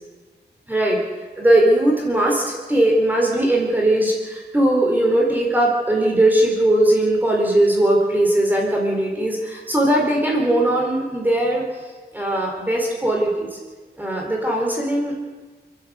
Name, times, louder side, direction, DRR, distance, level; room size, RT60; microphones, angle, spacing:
voice 1, 0.7-1.0 1.4-11.6 12.1-13.5 14.0-15.1, right 1 dB, 10° right, -2 dB, 4.3 m, -19 dB
28.5 x 11.5 x 8.2 m, 1.4 s
wide cardioid pair, 155°, 18 cm